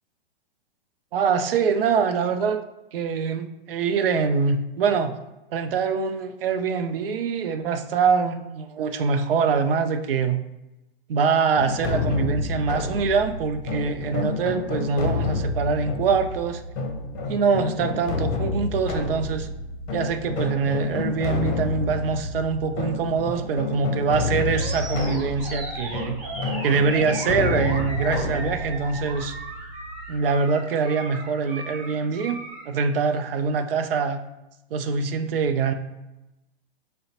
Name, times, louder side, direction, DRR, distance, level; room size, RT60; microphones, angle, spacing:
voice 1, 1.1-2.6 2.9-5.1 5.5-10.4 11.1-16.6 17.3-19.5 19.9-26.2 26.6-29.4 30.1-34.2 34.7-35.7, right 5 dB, 65° right, 8 dB, 0.5 m, -24 dB
sound 1, 11.6-30.3, left 3 dB, 30° left, 0.8 m, -29 dB
Animal, 24.5-32.7, right 2 dB, 45° right, 1.3 m, -36 dB
5.0 x 2.1 x 2.7 m, 0.95 s
figure-of-eight pair, 115°, 30 cm